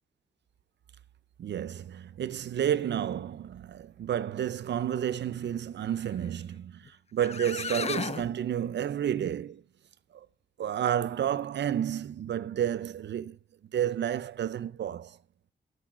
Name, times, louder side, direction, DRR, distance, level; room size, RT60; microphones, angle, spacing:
voice 1, 1.4-9.6 10.1-10.3 10.6-13.4 13.7-15.2, right 10 dB, 70° right, 0.6 m, -31 dB
sound 1, 6.9-7.0 7.2-8.3, left 5 dB, 35° left, 0.5 m, -34 dB
13.0 x 4.7 x 6.4 m
cardioid pair, 80°, 19 cm